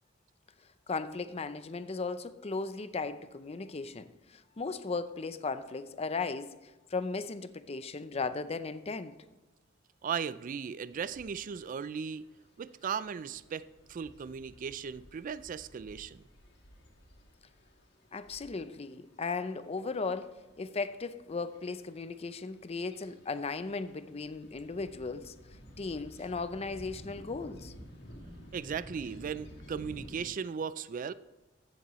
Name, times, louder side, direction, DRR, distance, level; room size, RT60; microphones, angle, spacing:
voice 1, 0.9-9.1 18.1-25.3 25.8-27.7, left 4 dB, 30° left, 0.5 m, -36 dB
voice 2, 10.0-12.2 12.6-16.2 28.5-31.1, right 6 dB, 45° right, 0.3 m, -37 dB
sound 1, 10.9-30.2, equal, 60° left, 2.2 m, -53 dB
15.0 x 7.3 x 3.1 m
head